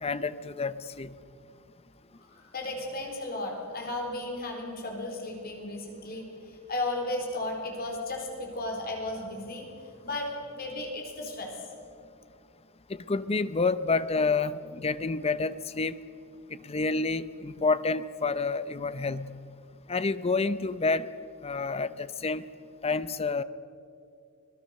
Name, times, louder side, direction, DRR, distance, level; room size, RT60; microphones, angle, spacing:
voice 1, 0.0-1.1 12.9-16.0 16.6-19.3 19.9-21.1 21.4-22.4 22.8-23.4, left 4 dB, 25° left, 14 dB, 0.7 m, -29 dB
voice 2, 2.2-10.3 10.6-11.7, left 2 dB, 45° left, 1 dB, 4.1 m, -35 dB
25.5 x 20.0 x 6.6 m, 2.5 s
head